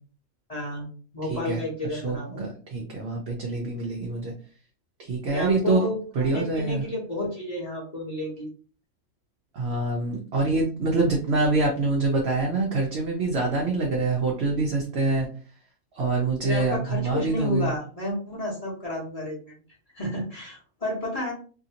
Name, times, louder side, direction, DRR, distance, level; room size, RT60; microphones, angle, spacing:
voice 1, 0.5-2.5 5.3-8.5 16.4-19.5 19.9-21.3, left 1 dB, 30° left, -4 dB, 0.9 m, -31 dB
voice 2, 1.2-4.3 5.0-5.9 6.1-6.8 9.5-15.3 15.9-17.8, right 3 dB, 60° right, -1 dB, 0.7 m, -25 dB
2.8 x 2.6 x 2.8 m, 0.40 s
omnidirectional pair, 1.5 m